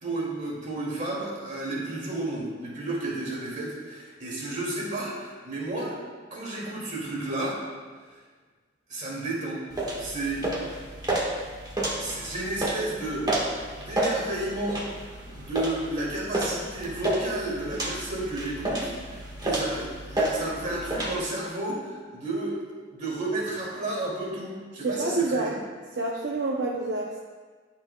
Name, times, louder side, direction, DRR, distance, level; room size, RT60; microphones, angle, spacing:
voice 1, 0.0-6.0 6.3-7.6 8.9-9.6 10.0-10.5 12.0-13.3 13.8-14.8 15.4-22.6 22.9-25.5, right 2 dB, 45° right, -5 dB, 2.3 m, -32 dB
sound 1, 9.7-21.1, right 1 dB, 25° right, 1.4 m, -31 dB
voice 2, 24.8-25.5 26.0-27.2, right 2 dB, 70° right, -1 dB, 0.6 m, -28 dB
11.5 x 6.0 x 2.2 m, 1.5 s
head